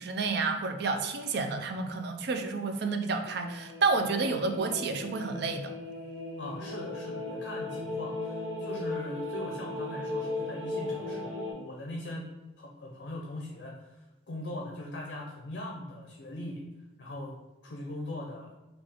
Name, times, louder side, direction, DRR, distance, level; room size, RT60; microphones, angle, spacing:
voice 1, 0.0-5.7, right 4 dB, 55° right, 5 dB, 0.4 m, -30 dB
sound 1, 3.2-11.5, left 2 dB, 25° right, 1.2 m, -37 dB
voice 2, 6.4-12.3 12.6-16.6 17.0-17.3 17.6-18.5, left 1 dB, 55° left, -1 dB, 0.5 m, -40 dB
3.4 x 2.4 x 3.6 m, 1.1 s
head